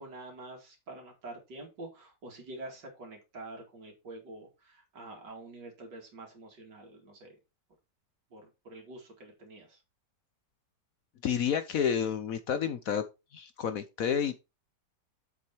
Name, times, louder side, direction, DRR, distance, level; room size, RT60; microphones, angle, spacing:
voice 1, 0.0-7.3 8.3-9.8, right 2 dB, 80° right, 3.1 m, -47 dB
voice 2, 11.2-13.0 13.3-14.4, left 8 dB, 60° left, 1.1 m, -30 dB
7.7 x 6.3 x 4.5 m
omnidirectional pair, 1.8 m